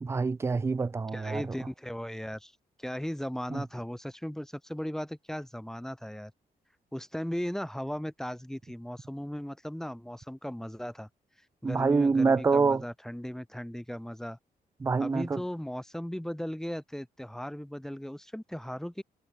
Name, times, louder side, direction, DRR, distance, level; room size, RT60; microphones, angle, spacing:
voice 1, 0.0-1.5 3.5-3.6 11.6-12.8 14.8-15.4, right 4 dB, 15° right, 0.4 m, -26 dB
voice 2, 1.1-2.5 2.8-6.3 6.9-11.1 11.6-14.4 15.0-19.0, equal, 5° left, 2.1 m, -37 dB
wide cardioid pair, 130°, 16 cm